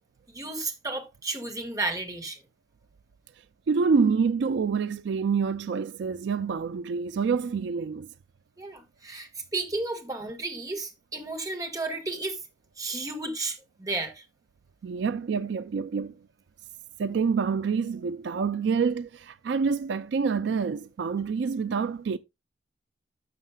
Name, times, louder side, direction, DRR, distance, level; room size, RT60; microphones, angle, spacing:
voice 1, 0.3-2.4 8.6-12.4 12.8-14.2, right 2 dB, 20° right, 1.5 m, -33 dB
voice 2, 3.7-8.1 14.8-16.1 17.0-22.2, right 5 dB, 65° right, 0.4 m, -27 dB
12.5 x 6.5 x 2.2 m
head